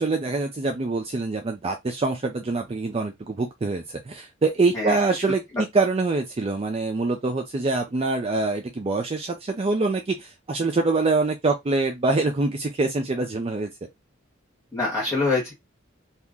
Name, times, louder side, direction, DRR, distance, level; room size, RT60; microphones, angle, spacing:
voice 1, 0.0-13.7, right 3 dB, 30° right, 0.4 m, -25 dB
voice 2, 4.7-5.3 14.7-15.5, left 3 dB, 15° left, 1.2 m, -25 dB
2.8 x 2.4 x 3.5 m
head